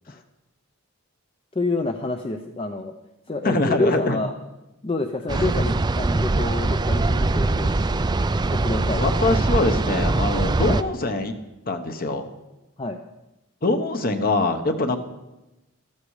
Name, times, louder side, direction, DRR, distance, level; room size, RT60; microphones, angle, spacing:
voice 1, 1.5-2.9 3.3-4.3 4.8-7.7 8.5-9.0 10.7-10.8 12.8-13.0, left 2 dB, 25° left, 5 dB, 0.6 m, -27 dB
voice 2, 3.4-4.2 5.3-5.5 9.0-11.3 11.7-12.3 13.6-15.0, left 2 dB, 40° left, 7 dB, 1.2 m, -23 dB
sound 1, 5.3-10.8, right 2 dB, 20° right, 0.4 m, -22 dB
14.0 x 13.5 x 4.9 m, 0.99 s
head